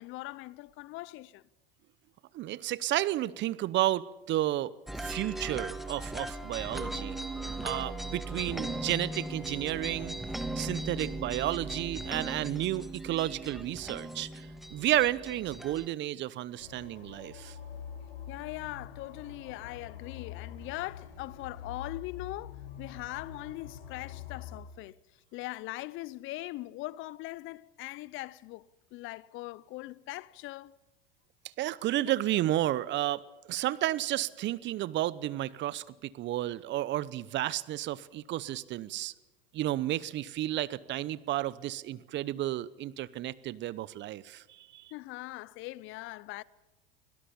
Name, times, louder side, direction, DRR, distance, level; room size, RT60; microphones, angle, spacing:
voice 1, 0.0-1.4 18.3-25.0 25.3-30.7 44.9-46.4, left 19 dB, 45° left, 0.6 m, -41 dB
voice 2, 2.3-4.7 5.0-7.2 7.6-17.6 31.6-33.2 33.5-39.1 39.5-44.9, right 14 dB, 40° right, 0.8 m, -32 dB
sound 1, 4.9-15.9, right 2 dB, ahead, 1.5 m, -38 dB
sound 2, 16.6-24.6, left 8 dB, 70° left, 5.0 m, -45 dB
24.0 x 17.5 x 7.1 m
hypercardioid pair, 90°, 29 cm